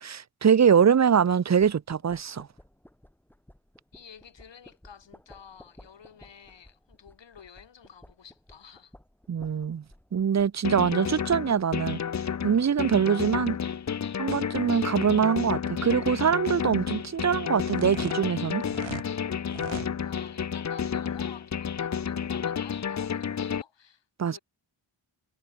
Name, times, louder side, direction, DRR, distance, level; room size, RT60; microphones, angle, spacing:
voice 1, 0.0-2.5 9.3-9.8 10.1-12.0 12.4-13.6 14.2-18.6 24.2-24.4, right 7 dB, 35° right, 0.7 m, -23 dB
sound 1, 1.6-11.7, left 1 dB, 5° left, 3.0 m, -56 dB
voice 2, 3.9-8.9 19.7-24.4, left 7 dB, 65° left, 7.8 m, -52 dB
sound 2, 10.6-23.6, left 7 dB, 35° left, 0.7 m, -31 dB
sound 3, 17.7-19.1 19.5-19.9, right 13 dB, 90° right, 0.7 m, -40 dB
wide cardioid pair, 165°, 46 cm